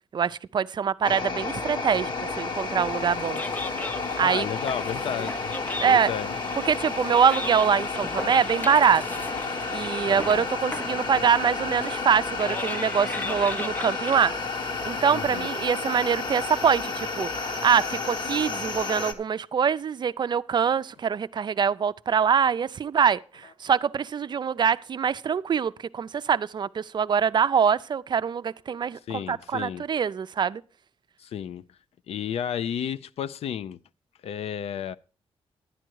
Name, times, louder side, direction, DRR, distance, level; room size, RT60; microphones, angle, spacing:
voice 1, 0.1-3.4 4.2-4.5 5.8-6.1 6.7-9.0 9.7-14.4 14.9-29.0 29.3-30.6, right 7 dB, 45° right, 0.4 m, -24 dB
sound 1, 1.0-19.1, left 4 dB, 45° left, 1.2 m, -31 dB
sound 2, 3.1-15.3, left 2 dB, 15° left, 0.5 m, -38 dB
voice 2, 4.2-5.5 5.8-6.3 10.0-10.5 15.1-15.5 29.1-29.8 31.2-31.7 32.1-33.8 34.2-35.0, left 9 dB, 80° left, 0.5 m, -32 dB
11.5 x 9.0 x 4.6 m
cardioid pair, 105°, 10 cm